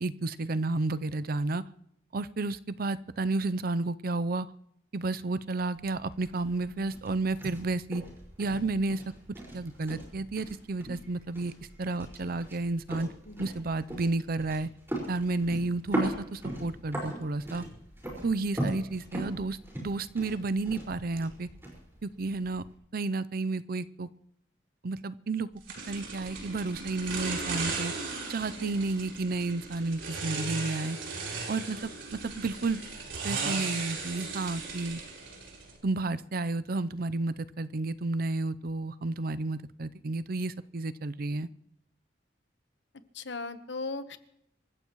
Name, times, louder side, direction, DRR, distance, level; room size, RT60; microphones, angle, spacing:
voice 1, 0.0-1.6 2.1-4.5 4.9-8.0 8.4-9.0 9.5-11.5 11.8-13.1 13.4-14.7 15.1-17.6 18.2-21.5 22.0-22.6 22.9-24.1 24.8-25.5 25.9-27.9 28.3-31.0 31.5-31.9 32.2-32.8 33.2-35.0 35.8-41.5, right 3 dB, 50° right, 16 dB, 0.6 m, -31 dB
sound 1, 5.7-22.7, right 1 dB, 15° right, 5.0 m, -40 dB
sound 2, 25.7-35.8, right 4 dB, 75° right, 4.1 m, -37 dB
voice 2, 43.1-44.2, left 3 dB, 65° left, 10 dB, 1.1 m, -37 dB
26.5 x 14.5 x 3.1 m, 0.77 s
head